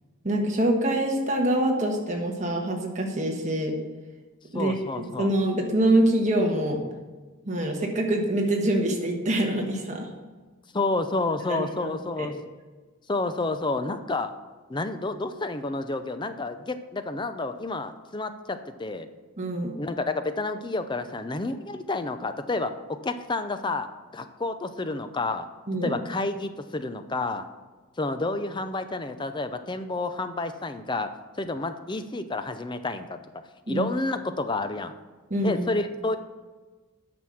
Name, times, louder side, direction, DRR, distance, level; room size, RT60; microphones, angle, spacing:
voice 1, 0.2-3.7 4.5-6.8 7.4-10.1 11.5-11.9 12.2-12.3 19.4-19.7 25.7-25.9 33.7-33.9 35.3-35.6, right 1 dB, 30° right, 1 dB, 1.4 m, -25 dB
voice 2, 4.5-5.3 10.7-12.3 13.1-14.3 14.7-19.1 19.8-22.7 23.0-23.9 24.1-25.5 25.8-27.4 28.0-31.1 31.4-33.2 33.7-34.9 35.4-36.2, left 2 dB, 20° left, 9 dB, 0.5 m, -30 dB
9.1 x 6.0 x 6.4 m, 1.3 s
head